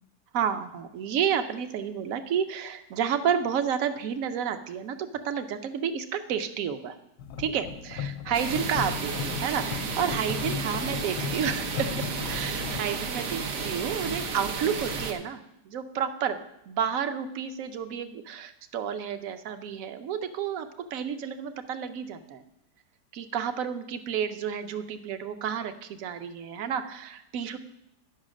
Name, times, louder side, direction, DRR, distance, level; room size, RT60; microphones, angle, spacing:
voice 1, 0.3-7.0 7.4-11.9 12.3-22.4 23.1-27.6, right 8 dB, 65° right, 10 dB, 1.1 m, -31 dB
sound 1, 7.2-12.8, left 8 dB, 75° left, 1.1 m, -36 dB
sound 2, 8.3-15.1, right 5 dB, 90° right, 1.6 m, -33 dB
10.5 x 5.6 x 6.2 m, 0.82 s
omnidirectional pair, 1.7 m